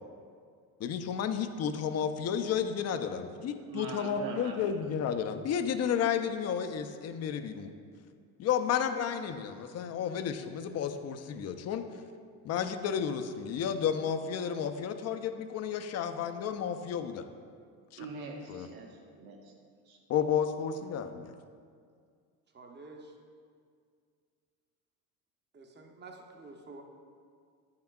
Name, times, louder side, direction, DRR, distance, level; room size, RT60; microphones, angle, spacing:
voice 1, 0.8-7.7 8.4-11.8 12.4-17.2 17.9-18.0 18.5-18.7 20.1-21.3, left 8 dB, 40° left, 8 dB, 0.5 m, -32 dB
voice 2, 3.7-4.8 18.0-19.5 19.9-20.0, right 4 dB, 55° right, 1 dB, 1.1 m, -42 dB
voice 3, 22.5-23.1 25.5-26.8, right 3 dB, 25° right, 3 dB, 0.8 m, -49 dB
8.5 x 5.7 x 2.3 m, 2.2 s
supercardioid pair, 80°, 42 cm